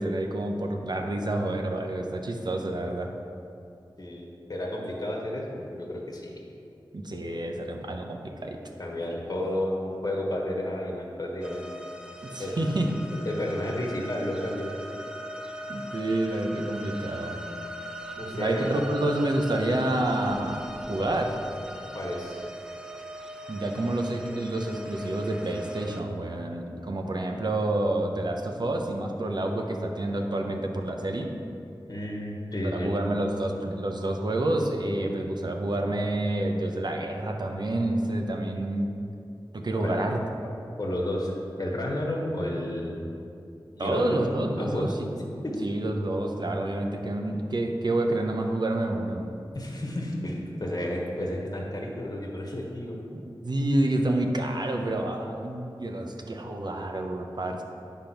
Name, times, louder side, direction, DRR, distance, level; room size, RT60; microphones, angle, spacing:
voice 1, 0.0-3.1 6.9-8.6 12.2-12.9 15.7-17.4 18.3-21.3 23.5-31.3 32.7-38.9 39.5-40.2 43.8-45.1 45.6-49.4 53.1-57.6, right 1 dB, 55° right, 2 dB, 0.8 m, -28 dB
voice 2, 4.0-6.4 8.8-11.7 12.4-12.5 13.2-14.7 18.2-18.8 19.8-20.0 21.9-22.4 31.9-32.9 39.8-40.1 40.8-41.3 41.6-43.1 43.8-44.2 44.6-45.6 49.5-53.0, left 1 dB, 45° left, -2 dB, 1.3 m, -31 dB
sound 1, 11.4-26.0, equal, 10° right, 0.5 m, -40 dB
9.7 x 3.6 x 5.8 m, 2.6 s
wide cardioid pair, 80°, 9 cm